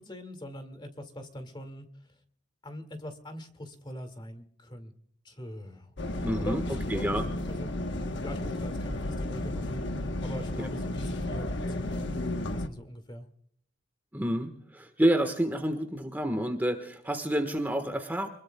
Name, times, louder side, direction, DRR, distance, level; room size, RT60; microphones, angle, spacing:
voice 1, 0.0-1.9 2.6-4.9 5.2-5.9 6.4-7.2 7.5-7.7 8.2-9.8 10.2-12.2 12.5-13.3, equal, 25° left, 7 dB, 2.1 m, -42 dB
sound 1, 6.0-12.7, left 1 dB, 65° left, 1.1 m, -33 dB
voice 2, 6.2-6.6 6.9-7.2 14.1-18.3, right 1 dB, 10° right, 6 dB, 1.3 m, -28 dB
26.5 x 20.5 x 2.3 m, 0.65 s
head